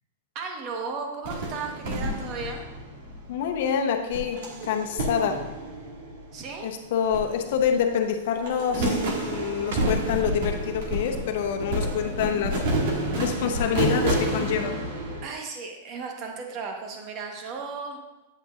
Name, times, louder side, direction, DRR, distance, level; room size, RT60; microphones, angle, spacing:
voice 1, 0.3-2.7 6.3-6.7 15.2-18.0, right 4 dB, 35° right, 2 dB, 1.2 m, -35 dB
sound 1, 1.2-3.6 4.1-6.6 7.1-8.0 8.3-15.2, right 1 dB, 60° right, 1.8 m, -30 dB
voice 2, 3.3-5.4 6.6-12.6 13.1-14.8, left 7 dB, 60° left, 4 dB, 0.9 m, -26 dB
sound 2, 6.8-12.7, right 2 dB, 75° right, 1.3 m, -38 dB
8.6 x 7.7 x 2.5 m, 1.1 s
supercardioid pair, 150°, 0 cm